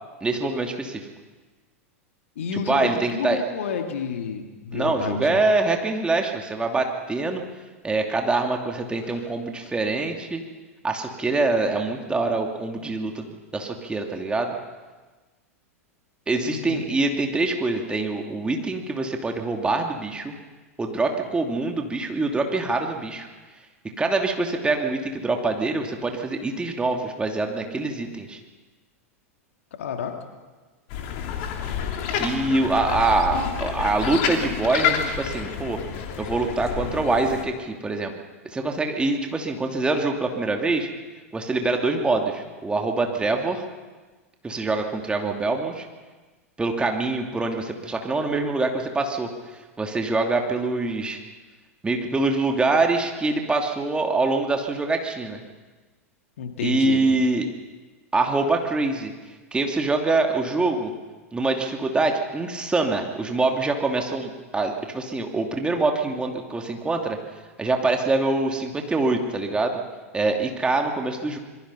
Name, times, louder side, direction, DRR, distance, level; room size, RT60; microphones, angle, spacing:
voice 1, 0.2-1.1 2.5-3.4 4.7-7.4 7.8-10.4 10.8-14.6 16.3-20.3 20.8-23.3 24.0-28.4 32.2-35.8 36.2-38.1 38.5-40.9 41.3-43.6 44.4-45.9 46.6-49.3 49.8-51.2 51.8-55.4 56.6-57.5 58.1-59.1 59.5-60.9 61.3-67.2 67.6-69.8 70.1-71.4, right 3 dB, 10° right, 3 dB, 2.6 m, -24 dB
voice 2, 2.4-5.4 9.6-9.7 16.5-16.8 29.7-30.2 32.5-32.6 56.4-57.0, left 6 dB, 65° left, 4 dB, 2.7 m, -30 dB
sound 1, 30.9-37.4, left 8 dB, 50° left, 3.1 m, -29 dB
26.5 x 22.5 x 5.6 m, 1.3 s
figure-of-eight pair, 90°, 8 cm